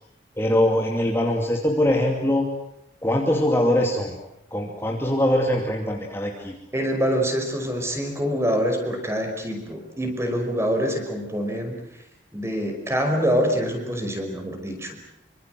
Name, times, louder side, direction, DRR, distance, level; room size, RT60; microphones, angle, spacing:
voice 1, 0.4-2.5 3.0-4.2 4.5-6.6, left 1 dB, 15° left, 1 dB, 2.6 m, -22 dB
voice 2, 6.7-11.8 12.3-15.0, equal, 15° right, 4 dB, 5.3 m, -25 dB
27.0 x 25.0 x 7.9 m, 0.84 s
head